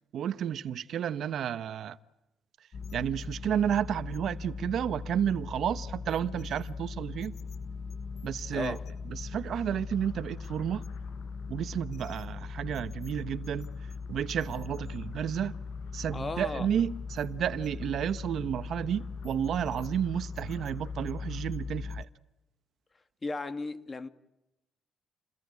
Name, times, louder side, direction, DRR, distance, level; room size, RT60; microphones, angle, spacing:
voice 1, 0.1-2.0 2.9-7.4 8.2-8.8 9.1-10.9 11.5-13.7 14.1-15.5 15.9-22.1, right 9 dB, 70° right, 1.1 m, -31 dB
sound 1, 2.7-22.0, left 5 dB, 55° left, 1.0 m, -39 dB
voice 2, 8.5-8.8 16.1-16.7 23.2-24.1, left 3 dB, 30° left, 1.9 m, -35 dB
sound 2, 9.6-21.4, left 6 dB, 75° left, 6.9 m, -62 dB
29.5 x 21.0 x 9.6 m
cardioid pair, 90°, 0 cm